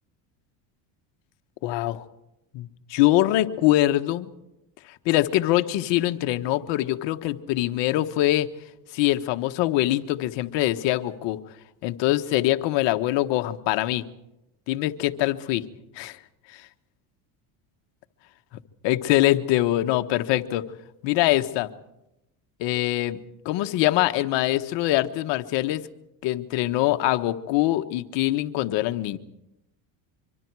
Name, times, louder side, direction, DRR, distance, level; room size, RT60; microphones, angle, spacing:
voice 1, 1.6-2.0 2.5-4.3 5.0-8.5 8.9-11.4 11.8-14.0 14.7-15.6 15.9-16.2 16.5-16.6 18.8-20.7 21.0-21.7 22.6-25.8 26.2-29.2, left 15 dB, 70° left, 8 dB, 1.4 m, -23 dB
25.0 x 24.5 x 4.8 m, 0.87 s
supercardioid pair, 95°, 45 cm